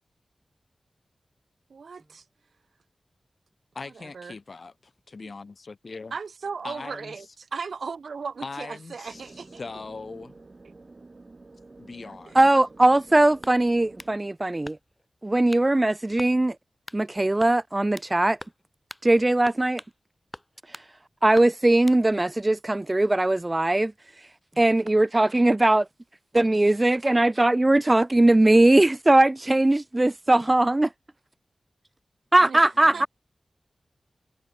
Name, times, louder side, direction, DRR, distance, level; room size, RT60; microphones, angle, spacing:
voice 1, 1.7-2.2 3.9-4.4 5.2-5.3 6.1-9.6 10.6-10.7 12.3-12.4 32.4-32.6 32.9-33.1, right 5 dB, 80° right, 1.5 m, -37 dB
voice 2, 3.7-6.1 6.6-7.3 8.4-10.4 11.8-12.5 32.8-33.1, left 4 dB, 55° left, 2.1 m, -40 dB
sound 1, 9.1-14.2, right 3 dB, 40° right, 8.0 m, -49 dB
voice 3, 12.3-14.8 15.2-16.6 16.9-18.4 19.0-19.8 20.7-20.8 21.2-23.9 24.6-25.9 26.3-30.9 32.3-33.1, right 2 dB, 25° right, 0.4 m, -20 dB
sound 2, 13.4-14.2 14.6-15.1 15.5-15.7 16.2-16.4 16.9-17.0 17.4-18.1 18.4-18.6 18.9-19.1 19.5-20.0 20.3-20.9 21.3-22.0, left 1 dB, 10° left, 1.3 m, -43 dB
wide cardioid pair, 80°, 0 cm